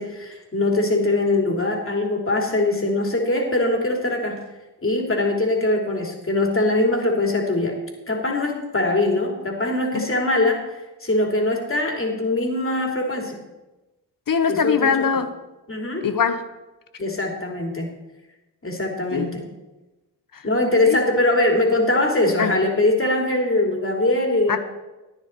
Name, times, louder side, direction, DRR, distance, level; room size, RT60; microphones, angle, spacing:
voice 1, 0.0-4.4 4.8-7.8 8.1-10.6 11.0-13.4 14.5-15.1 15.7-16.0 17.0-17.9 18.6-19.4 20.4-24.6, left 2 dB, 30° left, 3.0 m, -22 dB
voice 2, 14.3-15.3 16.0-16.5 19.1-19.3 20.3-20.4 20.8-21.0 22.4-22.6 24.5-24.6, left 6 dB, 50° left, 1.0 m, -22 dB
11.0 x 9.9 x 4.6 m
supercardioid pair, 45°, 43 cm